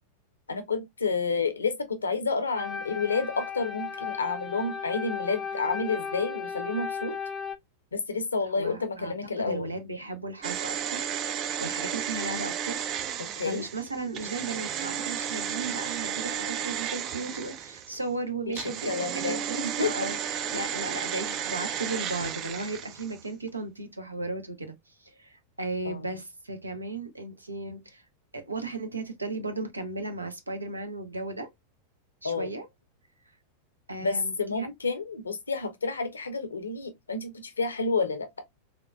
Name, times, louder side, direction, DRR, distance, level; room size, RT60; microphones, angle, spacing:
voice 1, 0.5-7.1 7.9-9.7 13.4-13.6 18.5-18.6 18.9-19.9 25.8-26.0 32.2-32.5 34.0-38.3, left 4 dB, 75° left, 0.6 m, -30 dB
sound 1, 2.6-7.6, left 6 dB, 20° left, 0.5 m, -35 dB
voice 2, 8.5-12.8 13.4-28.0 28.3-31.5 32.2-32.7 33.9-34.7, right 2 dB, 80° right, 0.6 m, -36 dB
sound 2, 10.4-18.0 18.5-23.2 23.5-23.6, right 9 dB, 35° right, 0.4 m, -33 dB
3.6 x 2.4 x 2.2 m
figure-of-eight pair, 90°, 0 cm